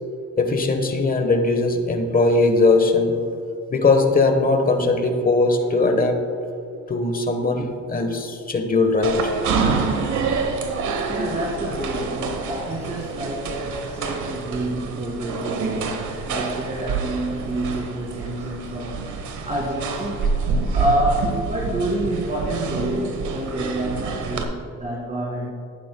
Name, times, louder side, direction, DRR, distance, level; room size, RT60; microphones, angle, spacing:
voice 1, 0.4-3.1 3.7-6.2 6.9-9.3 14.0-14.1, left 3 dB, 30° left, 5 dB, 1.2 m, -20 dB
sound 1, 9.0-24.4, right 5 dB, 75° right, 1.1 m, -27 dB
voice 2, 10.7-19.0 19.4-20.3 20.7-25.5, right 1 dB, 25° right, -5 dB, 2.1 m, -28 dB
11.5 x 9.5 x 2.3 m, 2.7 s
cardioid pair, 90°, 30 cm